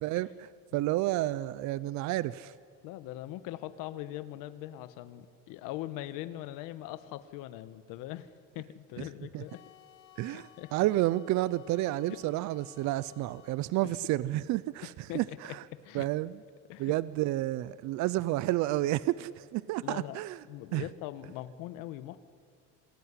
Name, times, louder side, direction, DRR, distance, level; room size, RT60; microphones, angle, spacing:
voice 1, 0.0-2.5 9.0-9.1 9.3-9.4 10.2-15.6 15.9-16.4 16.8-20.4 20.7-20.8, right 16 dB, 60° right, 0.6 m, -30 dB
voice 2, 2.8-8.3 8.5-9.6 10.2-10.7 12.1-12.2 13.8-13.9 15.1-15.4 15.8-16.1 16.7-16.9 19.8-20.2 20.5-22.2, left 14 dB, 90° left, 1.2 m, -41 dB
sound 1, 9.5-13.7, left 14 dB, 70° left, 2.4 m, -58 dB
26.5 x 19.0 x 9.8 m
cardioid pair, 155°, 32 cm